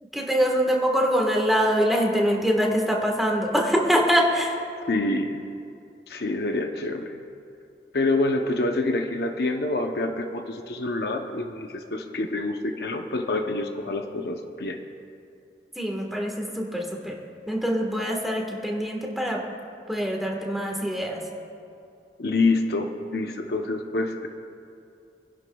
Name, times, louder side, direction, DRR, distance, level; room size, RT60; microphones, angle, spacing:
voice 1, 0.1-4.5 15.8-17.2 17.5-19.4 19.9-21.2, equal, ahead, -1 dB, 1.4 m, -24 dB
voice 2, 4.9-5.4 6.1-7.2 7.9-14.8 22.2-24.3, left 2 dB, 60° left, 5 dB, 0.7 m, -27 dB
26.5 x 11.0 x 2.3 m, 2.5 s
head